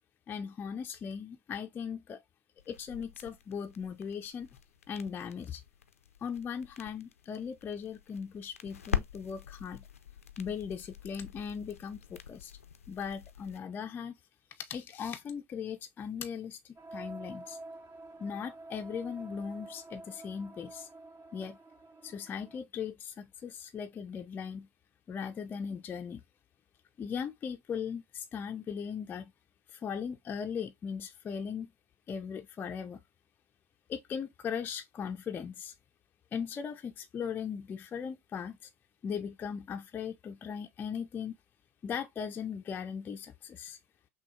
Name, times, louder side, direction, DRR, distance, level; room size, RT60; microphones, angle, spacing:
voice 1, 0.3-2.2 2.7-4.5 4.9-5.6 6.2-9.8 10.4-12.5 12.9-14.1 14.6-16.6 16.9-17.6 18.2-20.9 21.3-21.6 22.0-24.7 25.1-26.2 27.0-29.3 29.7-31.7 32.1-33.0 33.9-35.7 36.3-38.6 39.0-41.3 41.8-43.8, left 7 dB, 25° left, 0.4 m, -38 dB
sound 1, 2.6-13.6, left 8 dB, 80° left, 0.5 m, -43 dB
sound 2, 16.8-22.6, right 2 dB, 25° right, 0.6 m, -48 dB
5.9 x 2.2 x 2.4 m
figure-of-eight pair, 80°, 7 cm